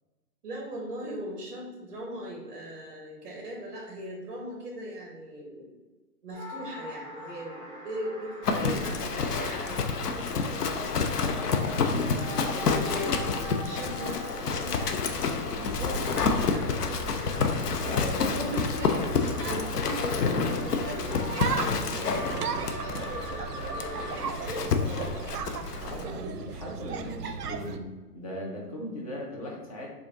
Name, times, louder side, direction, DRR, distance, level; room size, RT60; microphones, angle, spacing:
voice 1, 0.4-5.7 6.2-12.2 12.5-16.6 18.1-25.3, right 1 dB, 35° right, -2 dB, 0.7 m, -39 dB
sound 1, 6.3-24.2, right 1 dB, 10° right, 1.4 m, -43 dB
Livestock farm animals working animals, 8.4-26.0, left 5 dB, 70° left, 0.6 m, -29 dB
sound 2, 15.6-27.8, right 5 dB, 75° right, 0.5 m, -37 dB
voice 2, 17.8-18.6 25.7-29.9, left 1 dB, 25° left, -1 dB, 0.5 m, -38 dB
4.9 x 2.5 x 2.8 m, 1.3 s
figure-of-eight pair, 130°, 48 cm